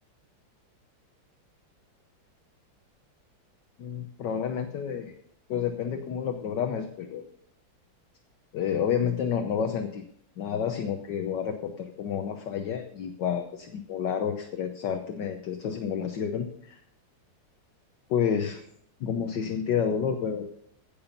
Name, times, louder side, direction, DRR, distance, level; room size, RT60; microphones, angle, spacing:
voice 1, 3.8-5.1 5.5-7.2 8.5-10.1 10.4-16.8 18.1-18.7 19.0-20.6, left 7 dB, 60° left, 6 dB, 1.4 m, -30 dB
16.0 x 7.2 x 5.3 m, 0.68 s
omnidirectional pair, 2.3 m